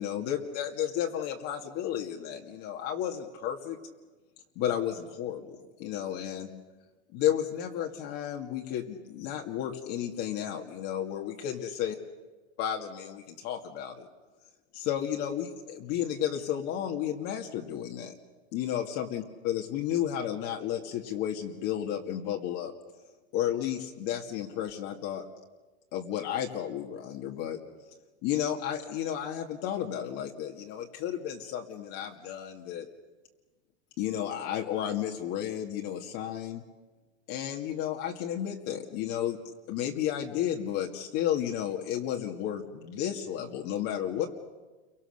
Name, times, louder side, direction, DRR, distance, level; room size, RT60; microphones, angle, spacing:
voice 1, 0.0-3.8 4.6-5.5 5.8-6.5 7.1-11.9 12.6-14.1 14.7-18.1 18.5-22.7 23.3-25.2 25.9-27.6 28.2-32.9 34.0-36.6 37.3-39.4 39.7-44.3, left 10 dB, 45° left, 1 dB, 2.3 m, -32 dB
29.5 x 23.5 x 6.7 m, 1.2 s
supercardioid pair, 135°, 35 cm